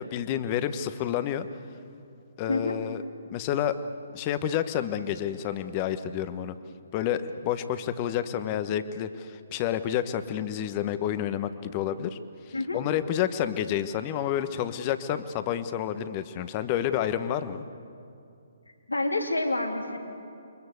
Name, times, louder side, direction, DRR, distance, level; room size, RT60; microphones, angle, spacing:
voice 1, 0.0-1.5 2.4-3.0 3.3-3.8 4.1-6.5 6.9-12.2 12.5-17.6, left 10 dB, 30° left, 11 dB, 1.2 m, -29 dB
voice 2, 18.9-20.0, left 2 dB, 85° left, 3 dB, 3.0 m, -28 dB
28.0 x 23.5 x 8.2 m, 2.5 s
figure-of-eight pair, 135°, 0 cm